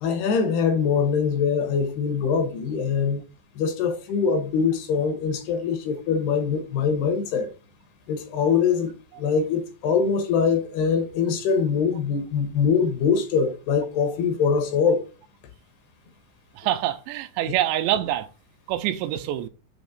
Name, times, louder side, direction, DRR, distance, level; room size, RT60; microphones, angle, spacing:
voice 1, 0.0-3.2 3.6-7.5 8.1-15.0, left 6 dB, 75° left, 2.7 m, -23 dB
voice 2, 16.6-18.3 18.7-19.5, right 13 dB, 85° right, 2.7 m, -25 dB
7.1 x 3.1 x 5.1 m
omnidirectional pair, 5.0 m